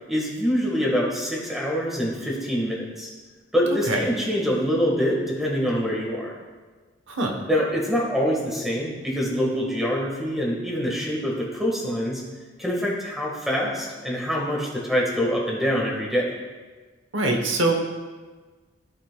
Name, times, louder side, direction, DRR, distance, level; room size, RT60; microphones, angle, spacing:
voice 1, 0.1-3.1 3.5-6.3 7.5-12.2 12.6-16.3, equal, ahead, -3 dB, 1.5 m, -25 dB
voice 2, 7.1-7.4 17.1-17.7, right 2 dB, 75° right, 3 dB, 1.0 m, -23 dB
15.0 x 5.8 x 2.2 m, 1.4 s
head